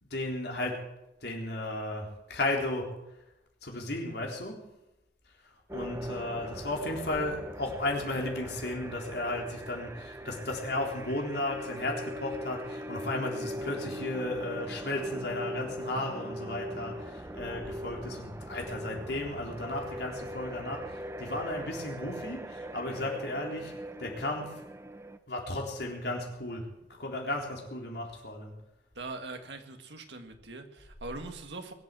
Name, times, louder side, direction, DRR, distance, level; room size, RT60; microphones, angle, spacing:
voice 1, 0.0-0.9 1.2-3.0 3.6-4.7 5.4-24.6 25.3-28.6, left 2 dB, 70° left, 0 dB, 3.8 m, -34 dB
sound 1, 5.7-25.2, equal, 15° right, 0.7 m, -40 dB
voice 2, 29.0-31.7, right 3 dB, 85° right, 5 dB, 2.0 m, -42 dB
21.5 x 8.2 x 7.7 m, 0.92 s
head